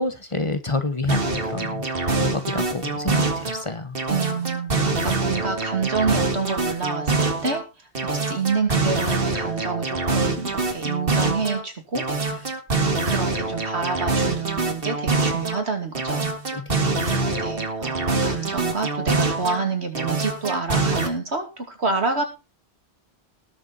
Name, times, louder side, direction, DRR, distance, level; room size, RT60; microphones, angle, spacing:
voice 1, 0.0-4.0 16.5-17.4, left 3 dB, 30° left, 9 dB, 1.2 m, -29 dB
sound 1, 1.1-3.6 3.9-7.6 7.9-11.6 11.9-15.6 15.9-19.6 19.9-21.1, right 3 dB, 60° right, 2.1 m, -25 dB
voice 2, 4.1-4.7 5.0-12.5 13.0-16.3 17.4-22.2, right 4 dB, 85° right, 4 dB, 3.0 m, -28 dB
19.5 x 7.1 x 4.1 m, 0.28 s
omnidirectional pair, 1.1 m